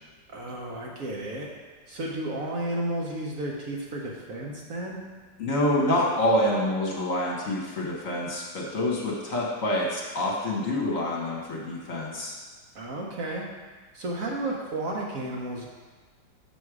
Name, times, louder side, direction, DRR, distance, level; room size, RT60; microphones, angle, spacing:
voice 1, 0.3-1.5 1.9-5.0 12.7-13.5 13.9-15.7, right 1 dB, 55° right, -2 dB, 1.1 m, -32 dB
voice 2, 5.4-12.4, left 1 dB, 50° left, -3 dB, 1.3 m, -27 dB
6.3 x 6.2 x 4.8 m, 1.4 s
omnidirectional pair, 2.0 m